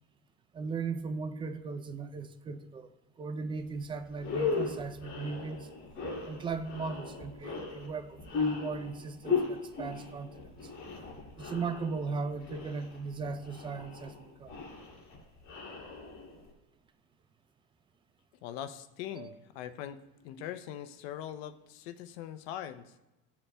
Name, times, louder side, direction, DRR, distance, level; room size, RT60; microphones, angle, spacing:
voice 1, 0.5-2.9 3.2-5.7 6.3-10.7 11.4-14.5 19.1-19.3, right 4 dB, 15° right, 9 dB, 0.4 m, -37 dB
sound 1, 3.7-3.8 4.1-16.5, left 5 dB, 40° left, 2.6 m, -37 dB
voice 2, 18.4-20.0 20.2-22.9, left 11 dB, 80° left, 10 dB, 0.7 m, -41 dB
15.0 x 7.1 x 2.2 m, 1.0 s
cardioid pair, 140°, 30 cm